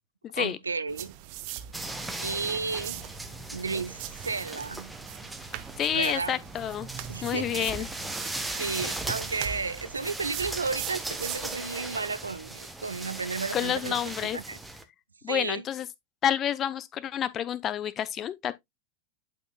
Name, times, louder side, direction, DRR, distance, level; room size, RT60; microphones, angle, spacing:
voice 1, 0.4-1.1 2.2-3.1 3.5-4.9 5.9-6.4 7.1-7.7 8.5-14.6 15.3-15.7, right 4 dB, 75° right, 0.5 m, -33 dB
sound 1, 0.9-11.6, right 12 dB, 45° right, 0.8 m, -42 dB
sound 2, 1.7-14.8, right 2 dB, 5° right, 1.1 m, -38 dB
voice 2, 5.8-6.9 7.2-7.9 13.5-14.4 15.2-15.9 16.2-18.5, left 10 dB, 30° left, 0.6 m, -29 dB
11.5 x 4.4 x 2.3 m
figure-of-eight pair, 90°, 0 cm